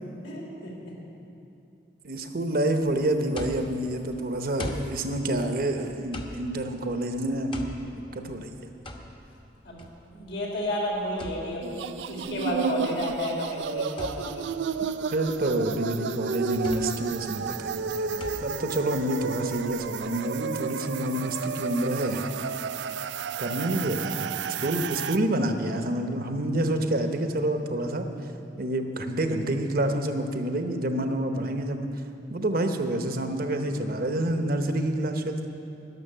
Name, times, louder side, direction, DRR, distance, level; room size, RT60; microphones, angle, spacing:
voice 1, 0.2-0.7 9.6-9.8 10.1-11.7 12.1-14.4, left 1 dB, 80° left, -3 dB, 3.5 m, -31 dB
voice 2, 2.0-7.6 8.1-8.5 15.1-22.2 23.4-28.1 28.6-31.9 32.3-35.5, right 1 dB, 55° right, 6 dB, 0.9 m, -28 dB
sound 1, 3.3-20.1, left 1 dB, 30° left, 1.0 m, -43 dB
sound 2, 11.6-25.2, right 6 dB, 75° right, 0.4 m, -32 dB
12.0 x 6.8 x 9.9 m, 2.7 s
head